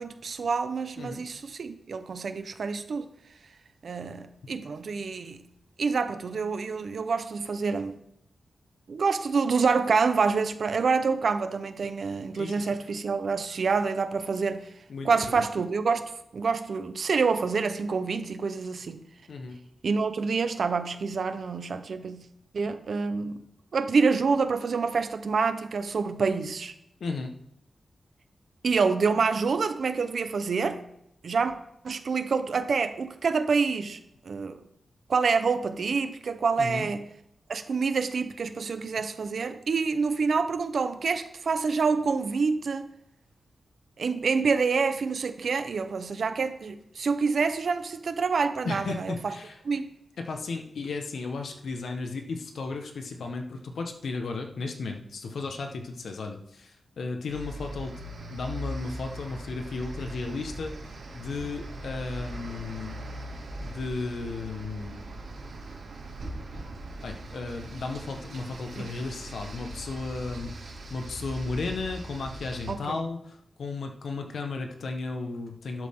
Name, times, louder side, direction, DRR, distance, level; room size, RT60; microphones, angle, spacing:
voice 1, 0.0-3.1 3.8-5.4 5.8-8.0 8.9-14.7 15.0-19.0 19.8-22.2 22.5-23.4 23.7-26.7 28.6-30.8 31.2-31.5 31.8-34.0 34.2-34.6 35.1-37.0 37.5-42.9 44.0-49.3 49.6-49.9 68.8-68.9 72.7-73.0, right 5 dB, 60° right, 1.0 m, -27 dB
voice 2, 12.3-12.7 14.9-15.5 19.3-19.6 27.0-27.3 36.6-36.9 48.6-49.6 50.2-57.9 58.3-63.0 63.6-65.0 67.0-75.9, left 3 dB, 75° left, 1.5 m, -34 dB
sound 1, 57.3-72.7, right 1 dB, 90° right, 3.1 m, -40 dB
12.0 x 11.0 x 3.8 m
wide cardioid pair, 165°, 0 cm